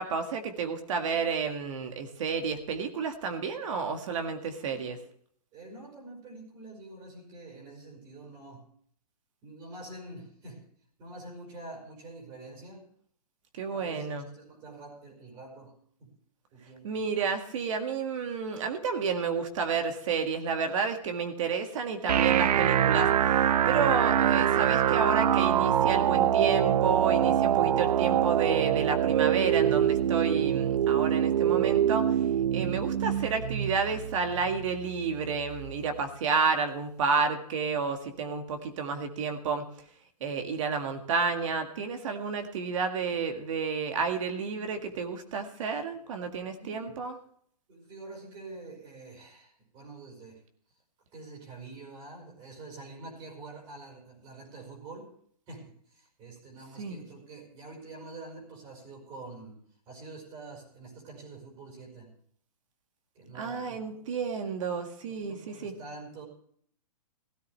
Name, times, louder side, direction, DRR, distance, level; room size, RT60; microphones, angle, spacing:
voice 1, 0.0-5.0 13.6-14.3 16.8-23.1 23.7-32.2 32.5-39.7 40.2-47.1 56.8-57.0 63.4-65.7, right 5 dB, 55° right, 6 dB, 1.8 m, -30 dB
voice 2, 5.5-8.6 9.4-10.6 11.0-12.9 13.6-15.7 16.0-16.1 16.5-17.0 46.6-46.9 47.7-50.4 51.1-55.1 55.5-59.6 59.9-62.1 63.1-64.0 65.0-66.2, right 2 dB, 25° right, 0 dB, 4.9 m, -46 dB
sound 1, 22.1-36.1, right 10 dB, 85° right, 0.6 m, -25 dB
16.5 x 13.5 x 3.2 m, 0.62 s
hypercardioid pair, 150°, 20 cm